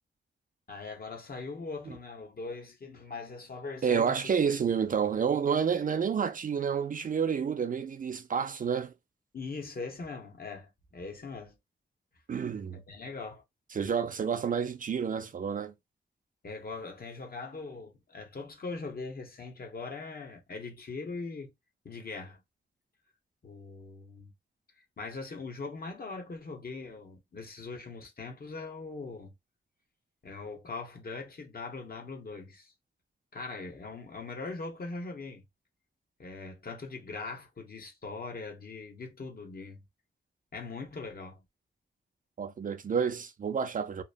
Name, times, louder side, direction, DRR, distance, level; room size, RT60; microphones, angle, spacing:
voice 1, 0.7-4.2 9.3-11.5 12.7-13.4 16.4-21.5 21.8-22.4 23.4-24.3 25.0-29.3 30.2-32.7 33.3-35.4 36.2-39.8 40.5-41.4, left 3 dB, 55° left, 0.9 m, -41 dB
voice 2, 3.8-8.9 12.3-12.8 13.7-15.7 42.4-44.0, right 7 dB, 45° right, 0.4 m, -29 dB
2.9 x 2.1 x 2.3 m
cardioid pair, 75°, 19 cm